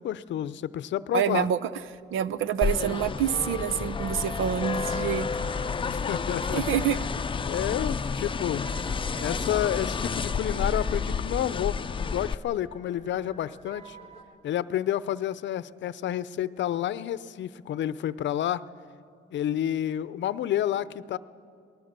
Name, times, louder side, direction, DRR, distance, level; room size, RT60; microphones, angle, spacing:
voice 1, 0.0-1.5 5.9-6.6 7.4-8.6 9.2-14.0 14.4-18.6 19.3-21.2, left 11 dB, 65° left, 16 dB, 0.7 m, -30 dB
voice 2, 1.1-1.7 2.1-5.3 6.5-7.0, right 9 dB, 80° right, 14 dB, 0.8 m, -27 dB
sound 1, 1.8-14.2, equal, 30° right, 3.4 m, -49 dB
sound 2, 2.6-12.3, left 5 dB, 25° left, 0.5 m, -30 dB
28.5 x 19.5 x 6.7 m, 2.5 s
cardioid pair, 90°, 20 cm